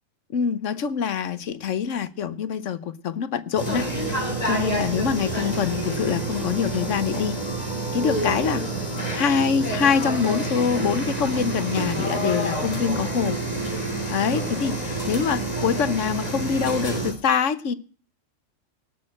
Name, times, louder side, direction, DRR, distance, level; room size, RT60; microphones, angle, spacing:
voice 1, 0.3-3.9 4.2-7.4 7.9-8.6 9.1-13.4 14.1-17.7, left 7 dB, 70° left, 1.2 m, -25 dB
sound 1, 3.6-17.1, right 2 dB, 30° left, 3.5 m, -28 dB
sound 2, 4.1-14.1, right 3 dB, 75° right, 5.3 m, -43 dB
sound 3, 8.1-9.4, left 1 dB, 10° left, 4.2 m, -44 dB
18.0 x 6.4 x 8.9 m
omnidirectional pair, 1.4 m